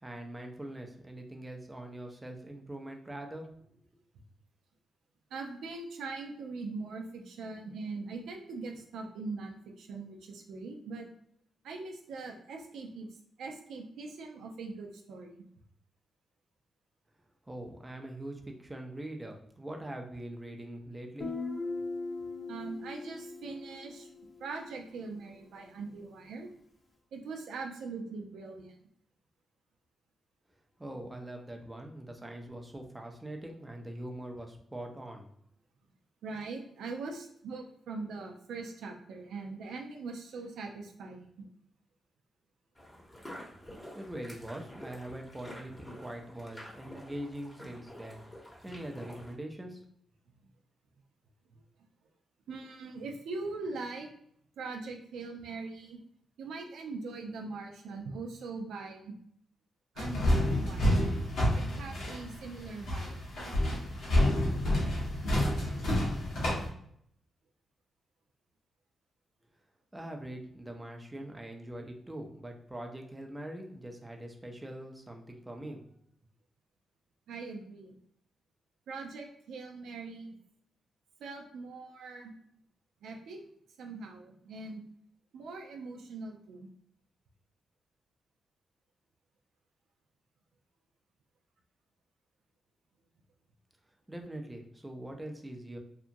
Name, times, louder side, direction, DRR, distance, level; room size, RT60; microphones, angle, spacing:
voice 1, 0.0-3.9 17.5-21.3 30.8-35.3 43.9-48.2 48.6-49.8 69.9-75.8 94.1-95.8, right 1 dB, 15° right, 2 dB, 0.5 m, -43 dB
voice 2, 5.3-11.1 11.6-13.1 13.4-15.3 22.5-24.1 24.4-26.5 27.1-28.7 36.2-41.5 52.5-54.1 54.6-56.0 56.4-59.1 59.9-60.9 61.5-63.1 77.3-78.0 78.9-80.3 81.2-82.3 83.0-83.4 83.8-84.8 85.3-86.7, right 3 dB, 85° right, 2 dB, 0.4 m, -41 dB
Guitar, 21.2-24.8, left 3 dB, 50° left, 0.7 m, -39 dB
sound 1, 42.7-49.3, equal, 20° left, 0.8 m, -48 dB
sound 2, 60.0-66.7, left 1 dB, 80° left, 0.9 m, -29 dB
2.8 x 2.4 x 2.6 m, 0.68 s
cardioid pair, 85°, 0 cm